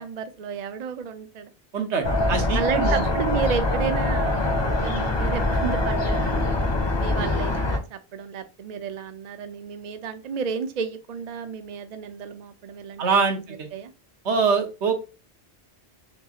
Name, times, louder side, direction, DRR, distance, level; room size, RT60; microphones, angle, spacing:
voice 1, 0.0-1.5 2.5-6.3 7.0-13.9, right 7 dB, 50° right, 0.5 m, -32 dB
voice 2, 1.7-3.1 7.2-7.3 13.0-13.7 14.2-14.9, right 5 dB, 80° right, 1.2 m, -24 dB
sound 1, 2.0-7.8, left 2 dB, 30° left, 0.6 m, -24 dB
6.1 x 2.4 x 2.8 m
omnidirectional pair, 1.1 m